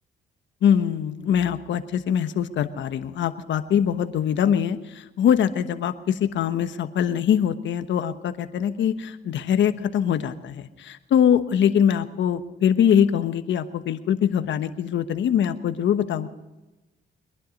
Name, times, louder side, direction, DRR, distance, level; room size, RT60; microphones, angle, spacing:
voice 1, 0.6-16.3, left 9 dB, 70° left, 10 dB, 1.2 m, -23 dB
23.0 x 11.5 x 5.3 m, 1.1 s
cardioid pair, 90°, 20 cm